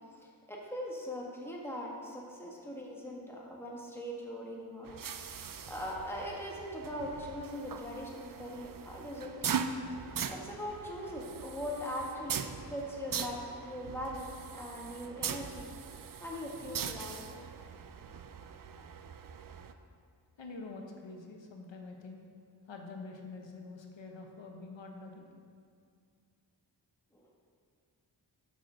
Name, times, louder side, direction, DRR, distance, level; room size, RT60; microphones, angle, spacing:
voice 1, 0.1-5.0 5.3-9.6 10.3-12.4 12.7-15.7 16.2-17.4 27.1-27.3, equal, 5° left, -3 dB, 1.5 m, -41 dB
sound 1, 4.8-19.7, right 7 dB, 50° right, 0.5 m, -41 dB
voice 2, 20.4-22.2 22.7-25.3, left 3 dB, 85° left, 2 dB, 1.0 m, -46 dB
7.1 x 5.7 x 6.3 m, 2.3 s
wide cardioid pair, 75°, 44 cm